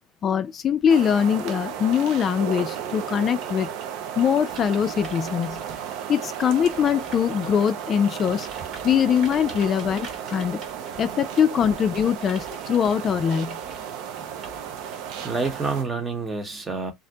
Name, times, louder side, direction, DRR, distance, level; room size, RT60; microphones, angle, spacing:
voice 1, 0.2-3.7 4.2-5.6 6.1-8.5 8.8-10.6 11.0-13.6, left 8 dB, 40° left, 0.3 m, -22 dB
sound 1, 0.9-15.8, right 9 dB, 70° right, 0.5 m, -34 dB
sound 2, 4.5-7.9 8.3-15.5, right 3 dB, 50° right, 1.2 m, -46 dB
voice 2, 14.0-14.8 15.1-16.9, right 4 dB, 25° right, 0.9 m, -30 dB
2.5 x 2.1 x 2.7 m
supercardioid pair, 95°, 0 cm